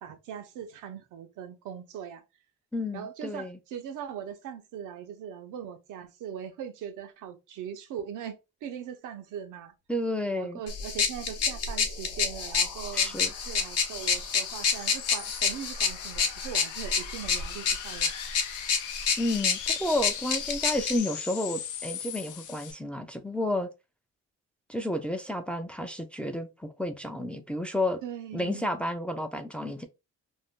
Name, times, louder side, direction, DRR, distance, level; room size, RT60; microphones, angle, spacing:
voice 1, 0.0-2.2 2.9-9.7 10.3-13.2 13.4-18.1 28.0-28.7, right 9 dB, 85° right, 0.7 m, -40 dB
voice 2, 2.7-3.6 9.9-10.6 12.9-13.3 19.2-23.7 24.7-28.0 28.3-29.9, left 1 dB, 5° left, 0.4 m, -31 dB
sound 1, 10.7-21.0, left 5 dB, 55° left, 0.9 m, -29 dB
sound 2, 10.9-22.7, left 9 dB, 90° left, 0.6 m, -42 dB
2.5 x 2.1 x 3.5 m
cardioid pair, 90°, 30 cm